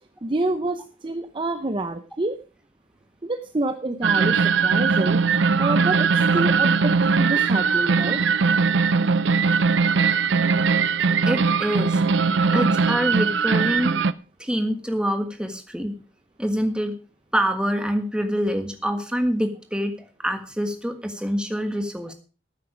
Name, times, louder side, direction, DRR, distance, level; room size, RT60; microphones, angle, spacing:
voice 1, 0.2-2.4 3.2-5.2 5.6-8.2, right 2 dB, 25° right, 9 dB, 0.7 m, -27 dB
sound 1, 4.0-14.1, right 5 dB, 80° right, 0.6 m, -20 dB
voice 2, 11.3-12.0 12.5-14.0 14.4-16.0 16.4-17.0 17.3-19.9 20.2-22.1, equal, 5° right, 6 dB, 1.6 m, -25 dB
12.5 x 9.1 x 5.1 m, 0.36 s
head